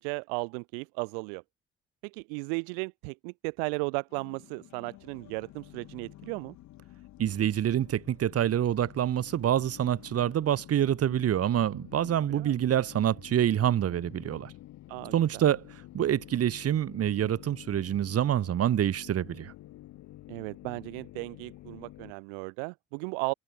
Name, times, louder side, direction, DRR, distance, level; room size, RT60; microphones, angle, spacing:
voice 1, 0.0-1.4 2.0-6.6 12.3-12.5 14.9-15.4 20.3-23.3, right 40 dB or more, 75° right, 1.1 m, -35 dB
sound 1, 4.1-22.1, left 15 dB, 65° left, 4.5 m, -50 dB
voice 2, 7.2-14.5 15.1-15.7 15.9-19.5, right 10 dB, 50° right, 1.7 m, -26 dB
hypercardioid pair, 50°, 30 cm